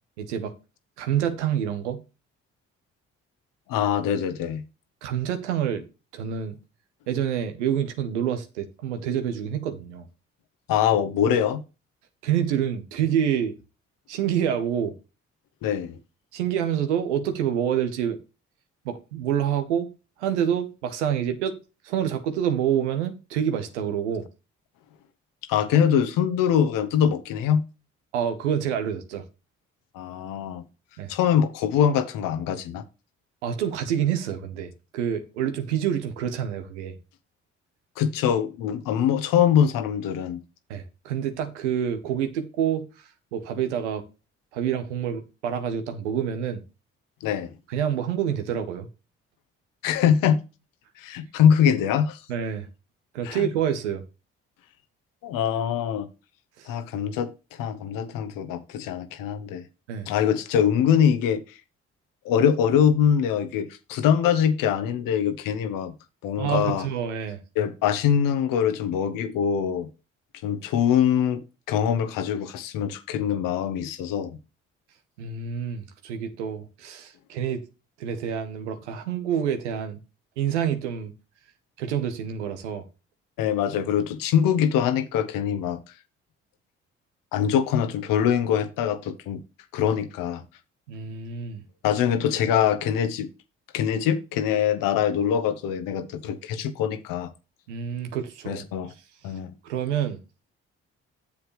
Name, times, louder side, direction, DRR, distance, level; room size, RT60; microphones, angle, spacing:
voice 1, 0.2-0.5 1.0-2.0 5.0-5.8 6.1-6.6 7.1-10.1 12.2-13.5 14.1-14.9 16.3-18.2 18.8-19.9 20.2-21.6 21.8-24.3 28.1-29.2 31.0-31.1 33.4-37.0 40.7-42.8 43.3-44.0 44.5-46.6 47.7-48.9 52.3-52.7 53.1-54.0 56.6-56.7 59.9-60.1 66.4-67.4 75.2-77.6 78.0-80.0 80.4-81.1 81.8-82.9 90.9-91.6 97.7-98.6 99.6-100.2, right 9 dB, 90° right, 0.9 m, -27 dB
voice 2, 3.7-4.6 10.7-11.6 15.6-16.0 25.5-27.6 29.9-30.6 31.1-32.8 38.0-40.4 47.2-47.5 49.8-50.4 51.0-52.2 53.2-53.5 55.2-56.1 56.7-57.3 57.6-59.6 60.1-61.4 62.2-65.9 66.2-66.9 67.6-69.9 70.4-71.4 71.7-74.4 83.4-85.8 87.3-89.4 89.7-90.4 91.8-93.3 93.7-97.3 98.5-98.9 99.2-99.5, left 8 dB, 75° left, 1.0 m, -23 dB
8.4 x 7.2 x 3.2 m
hypercardioid pair, 45°, 34 cm